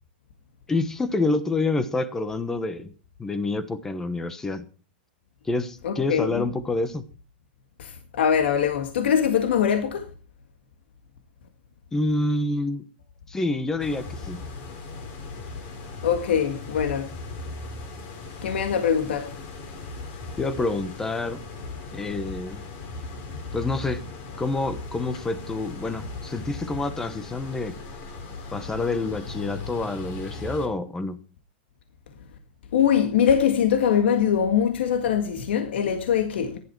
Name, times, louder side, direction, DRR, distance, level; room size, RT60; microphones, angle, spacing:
voice 1, 0.7-2.9 3.2-4.7 5.4-7.0 11.9-12.8 13.3-14.4 20.4-21.4 21.9-22.7 23.5-24.0 24.4-27.7 28.5-31.2, left 2 dB, 10° left, 1.0 m, -27 dB
voice 2, 5.8-6.4 7.8-10.0 16.0-17.1 18.4-19.3 32.7-36.6, left 8 dB, 80° left, 1.9 m, -22 dB
sound 1, 13.8-30.7, left 3 dB, 35° left, 4.0 m, -38 dB
15.5 x 11.5 x 4.6 m
supercardioid pair, 165°, 6 cm